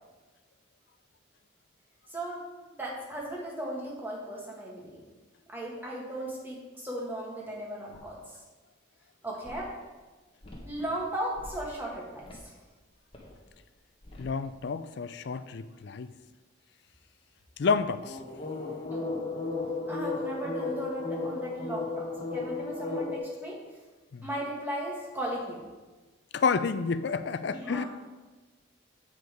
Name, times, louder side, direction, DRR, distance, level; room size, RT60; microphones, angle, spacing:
voice 1, 2.1-5.0 5.5-8.2 9.2-9.7 10.6-12.2 18.9-19.2 19.9-23.6 24.2-25.6 27.5-27.9, right 1 dB, 10° right, -3 dB, 1.5 m, -36 dB
sound 1, 7.9-8.1 9.4-9.5 10.4-10.9 11.4-11.8 12.2-12.4 13.1-13.3 14.0-14.3 18.0-23.2, left 3 dB, 25° left, 1.3 m, -35 dB
voice 2, 14.2-16.1 17.6-18.2 24.1-24.3 26.3-27.8, left 5 dB, 55° left, 12 dB, 0.4 m, -29 dB
7.8 x 5.3 x 5.0 m, 1.2 s
head